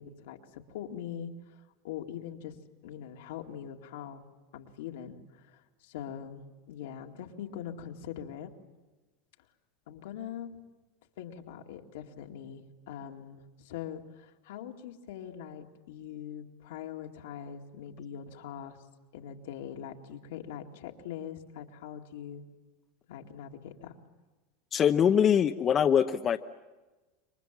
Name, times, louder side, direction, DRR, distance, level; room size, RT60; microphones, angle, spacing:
voice 1, 0.0-1.3 1.8-2.6 2.8-4.2 4.5-8.5 9.9-10.6 11.2-18.8 19.1-22.4 23.1-24.0, left 9 dB, 80° left, 3 dB, 2.2 m, -42 dB
voice 2, 24.7-26.4, left 8 dB, 35° left, 7 dB, 0.8 m, -23 dB
28.0 x 23.5 x 7.5 m, 1.2 s
supercardioid pair, 115°, 0 cm